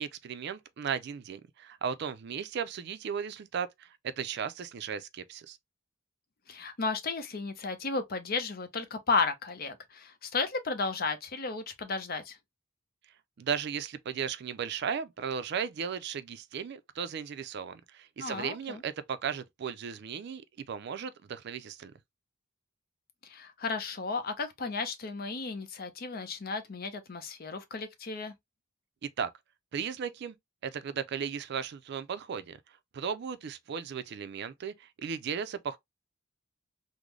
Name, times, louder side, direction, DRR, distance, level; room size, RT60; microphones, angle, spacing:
voice 1, 0.0-5.6 13.4-21.9 29.0-29.3 29.7-30.4 30.6-32.6 32.9-35.8, right 7 dB, 60° right, 0.4 m, -36 dB
voice 2, 6.5-12.4 18.2-18.8 23.2-28.3, left 4 dB, 50° left, 0.7 m, -33 dB
3.7 x 2.1 x 3.1 m
head